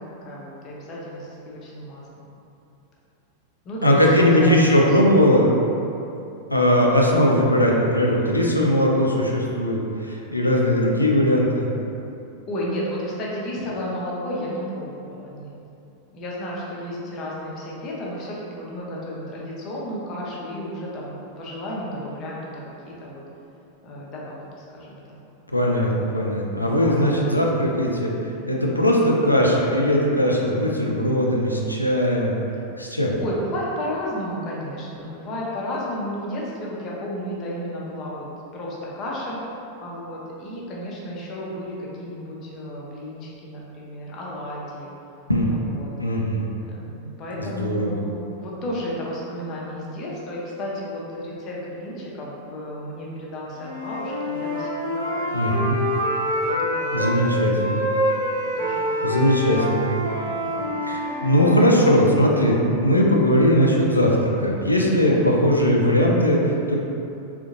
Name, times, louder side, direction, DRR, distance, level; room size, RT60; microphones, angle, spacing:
voice 1, 0.0-2.3 3.6-5.2 6.5-6.7 12.5-15.5 16.1-23.2 23.8-25.2 26.8-27.3 33.2-38.3 38.5-39.4 39.8-44.9 45.5-45.9 46.6-55.8 56.4-57.3 58.4-59.6 60.2-60.6 65.1-65.3, equal, 35° left, -4 dB, 0.6 m, -33 dB
voice 2, 3.8-5.5 6.5-11.7 25.5-28.1 28.5-32.3 32.8-33.2 45.3-45.6 46.0-46.4 47.4-48.0 55.3-55.8 56.9-57.8 59.0-60.0 60.9-66.7, equal, 85° left, -2 dB, 0.4 m, -19 dB
Wind instrument woodwind instrument, 53.6-57.2 57.6-61.8, equal, 75° right, 0.6 m, -26 dB
3.7 x 2.5 x 2.5 m, 2.8 s
figure-of-eight pair, 90°, 0 cm